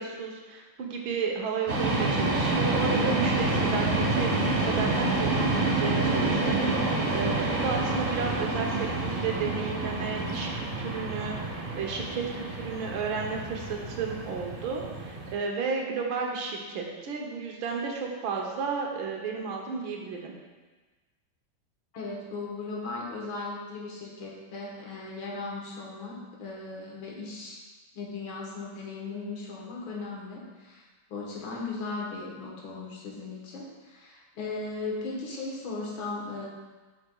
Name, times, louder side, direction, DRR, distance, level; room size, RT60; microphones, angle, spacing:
voice 1, 0.0-4.3 4.7-20.3, right 5 dB, 85° right, 0 dB, 1.7 m, -33 dB
sound 1, 1.7-15.3, right 2 dB, 50° right, 0.7 m, -28 dB
voice 2, 21.9-27.6 27.9-30.8 31.1-36.5, left 3 dB, 85° left, -3 dB, 2.0 m, -37 dB
7.9 x 6.0 x 2.3 m, 1.3 s
omnidirectional pair, 2.1 m